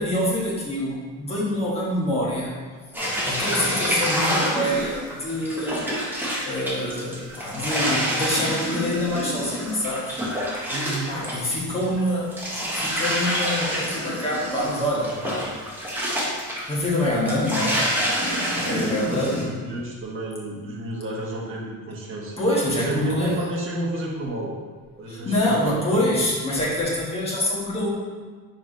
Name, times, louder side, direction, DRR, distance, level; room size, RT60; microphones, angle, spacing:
voice 1, 0.0-2.6 3.3-5.8 6.4-10.2 11.1-12.4 12.8-15.8 16.7-17.8 18.6-19.5 22.4-23.4 25.1-27.9, left 1 dB, 15° left, -6 dB, 1.5 m, -26 dB
sound 1, 2.9-12.0 12.3-19.4, equal, 5° right, 1.0 m, -27 dB
voice 2, 10.7-11.8 18.6-22.4 22.7-24.5 25.0-25.8 26.0-26.2, right 1 dB, 35° right, -3 dB, 1.3 m, -31 dB
4.8 x 4.7 x 5.2 m, 1.5 s
cardioid pair, 175°, 35 cm